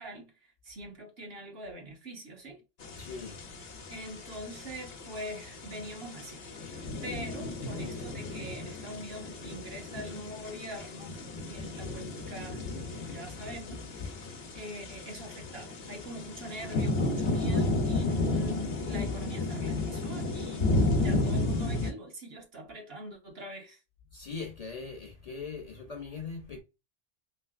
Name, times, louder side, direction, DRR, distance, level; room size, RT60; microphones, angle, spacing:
voice 1, 0.0-2.6 3.9-11.2 11.5-14.3 14.5-23.8, right 1 dB, 70° right, 1.3 m, -43 dB
sound 1, 2.8-21.9, left 2 dB, 75° left, 0.9 m, -33 dB
voice 2, 3.0-3.4 24.1-26.6, left 5 dB, 50° left, 0.5 m, -40 dB
3.2 x 2.8 x 2.3 m
omnidirectional pair, 1.0 m